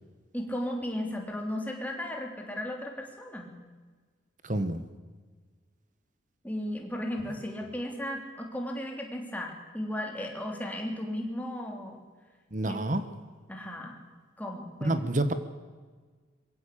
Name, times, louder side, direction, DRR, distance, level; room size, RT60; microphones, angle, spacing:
voice 1, 0.3-3.5 6.4-12.0 12.6-12.8 13.5-14.0 14.4-15.0, left 1 dB, 10° left, 1 dB, 3.1 m, -35 dB
voice 2, 4.4-4.8 12.5-13.0 14.8-15.3, right 1 dB, 40° right, 11 dB, 1.4 m, -28 dB
22.0 x 16.0 x 8.5 m, 1.5 s
head